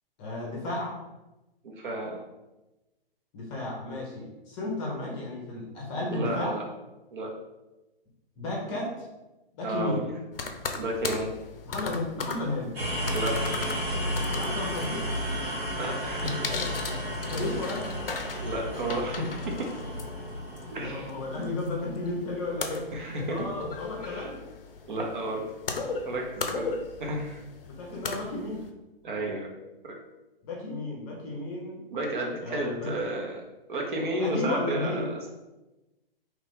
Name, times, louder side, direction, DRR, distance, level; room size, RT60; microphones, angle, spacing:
voice 1, 0.2-0.9 3.3-6.5 8.4-9.1 9.5-10.0 11.7-12.7 14.4-15.0 17.3-17.9 20.7-22.8 23.3-24.4 27.7-28.7 30.5-31.8 32.4-32.9 34.2-35.1, left 2 dB, 20° left, -3 dB, 0.6 m, -33 dB
voice 2, 1.6-2.2 6.1-6.6 7.1-7.3 9.6-10.0 10.7-11.3 13.1-13.4 15.8-16.6 17.2-17.3 18.4-19.7 20.7-21.1 22.9-23.5 24.0-24.3 24.9-25.4 26.0-26.7 27.0-27.4 29.0-29.5 31.9-33.4 33.7-35.3, right 1 dB, 55° right, 0 dB, 0.8 m, -32 dB
sound 1, 10.3-28.7, left 4 dB, 70° left, 0.5 m, -38 dB
sound 2, 12.7-22.5, equal, 85° right, 1.4 m, -33 dB
2.9 x 2.5 x 3.4 m, 1.0 s
figure-of-eight pair, 125°, 30 cm